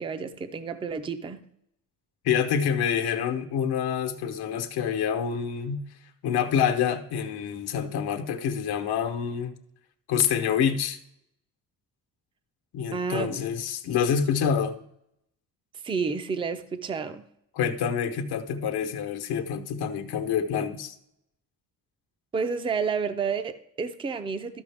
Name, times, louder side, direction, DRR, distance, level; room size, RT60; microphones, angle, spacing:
voice 1, 0.0-1.4 12.9-13.4 15.8-17.2 22.3-24.6, right 5 dB, 15° right, 0.4 m, -30 dB
voice 2, 2.2-5.8 6.2-9.6 10.1-11.0 12.7-14.8 17.5-20.9, left 7 dB, 90° left, 1.0 m, -27 dB
13.0 x 5.6 x 3.4 m
cardioid pair, 160°, 37 cm